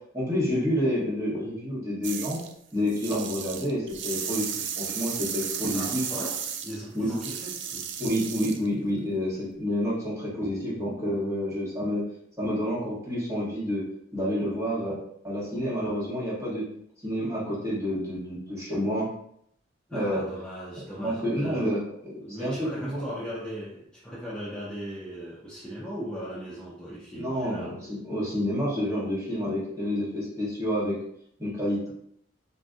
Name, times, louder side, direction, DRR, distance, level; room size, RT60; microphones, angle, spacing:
voice 1, 0.1-2.4 2.7-6.0 6.9-7.1 8.0-12.0 12.4-13.8 14.1-15.0 15.2-16.6 17.0-19.1 19.9-20.2 21.0-21.8 22.0-23.0 27.1-31.0 31.4-31.9, equal, 15° right, -8 dB, 1.4 m, -29 dB
sound 1, 2.0-2.5 2.9-8.7, right 8 dB, 70° right, 0.4 m, -34 dB
voice 2, 5.7-7.9 19.9-21.7 22.2-27.8, equal, 5° left, -8 dB, 0.5 m, -38 dB
3.8 x 2.5 x 2.4 m, 0.69 s
head